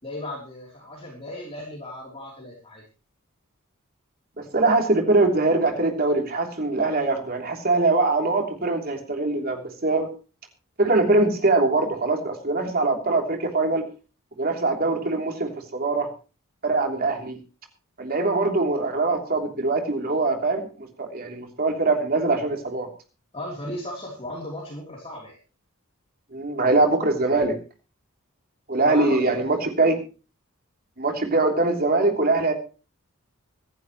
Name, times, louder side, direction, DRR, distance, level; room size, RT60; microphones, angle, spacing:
voice 1, 0.0-2.8 23.3-25.4 28.8-29.7, left 1 dB, 25° left, -2 dB, 3.3 m, -36 dB
voice 2, 4.4-10.1 10.8-13.8 14.4-16.1 16.6-17.4 18.0-22.9 26.3-27.5 28.7-29.9 31.0-32.5, right 3 dB, 45° right, 3 dB, 3.2 m, -22 dB
24.5 x 10.5 x 3.1 m, 0.34 s
head